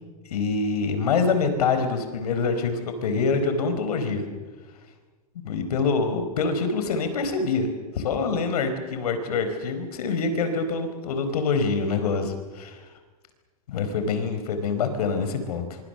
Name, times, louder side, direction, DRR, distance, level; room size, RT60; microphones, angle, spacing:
voice 1, 0.3-4.3 5.3-12.8 13.7-15.8, left 4 dB, 75° left, 8 dB, 4.5 m, -25 dB
25.0 x 24.0 x 6.9 m, 1.3 s
hypercardioid pair, 140°, 20 cm